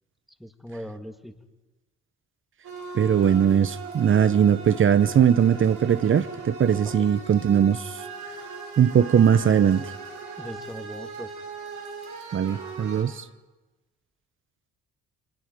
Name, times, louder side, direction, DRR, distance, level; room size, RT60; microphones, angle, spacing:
voice 1, 0.4-1.4 6.7-7.1 10.4-11.3, equal, ahead, 1.7 m, -39 dB
sound 1, 2.6-13.0, right 4 dB, 85° right, 7.6 m, -38 dB
voice 2, 2.9-8.0 8.8-9.9 12.3-13.2, right 8 dB, 45° right, 0.7 m, -20 dB
30.0 x 25.0 x 5.3 m
cardioid pair, 90°, 30 cm